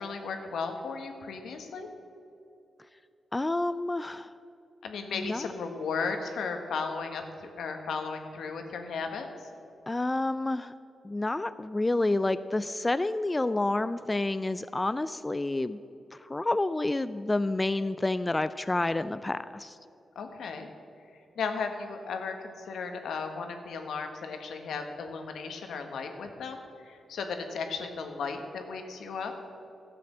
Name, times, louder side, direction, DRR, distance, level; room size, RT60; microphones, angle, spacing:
voice 1, 0.0-1.9 4.8-9.5 20.1-20.7 21.4-26.6 26.8-29.3, left 5 dB, 85° left, 5 dB, 1.3 m, -35 dB
voice 2, 3.3-4.3 5.2-5.5 9.9-10.7 11.0-15.8 16.3-19.7, left 2 dB, 20° left, 13 dB, 0.3 m, -29 dB
12.0 x 7.6 x 7.4 m, 2.7 s
cardioid pair, 65°, 0 cm